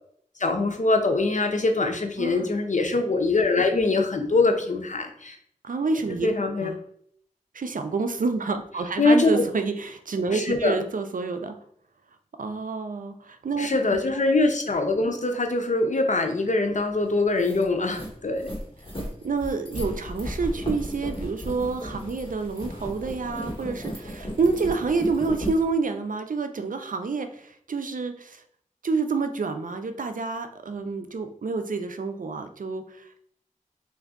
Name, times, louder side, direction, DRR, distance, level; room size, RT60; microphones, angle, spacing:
voice 1, 0.4-5.4 6.2-6.7 9.0-9.4 10.3-10.8 13.6-18.5, left 3 dB, 65° left, 4 dB, 0.7 m, -23 dB
voice 2, 2.2-2.5 5.6-6.3 6.6-6.8 7.5-11.6 12.4-13.7 14.1-14.2 19.2-28.4 28.8-33.2, right 4 dB, 80° right, 8 dB, 0.4 m, -28 dB
sound 1, 16.8-16.9 17.2-25.6, equal, 40° left, 1.4 m, -35 dB
3.4 x 2.6 x 3.6 m, 0.64 s
wide cardioid pair, 45°, 14 cm